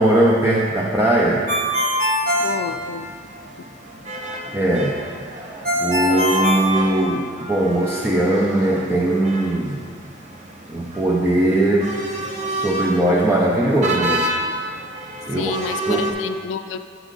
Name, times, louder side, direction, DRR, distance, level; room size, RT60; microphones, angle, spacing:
voice 1, 0.0-1.5 4.5-5.0 5.8-9.8 10.7-11.9 12.5-14.3 15.3-15.5 15.9-16.1, right 1 dB, 10° right, -3 dB, 0.4 m, -19 dB
Ringtone, 1.5-3.4 5.6-7.5, equal, 55° right, 1.1 m, -22 dB
sound 1, 2.2-16.1, right 1 dB, 40° right, 0.7 m, -31 dB
voice 2, 2.4-3.1 15.3-16.8, left 7 dB, 85° left, 10 dB, 0.3 m, -29 dB
7.2 x 6.0 x 3.9 m, 2.2 s
head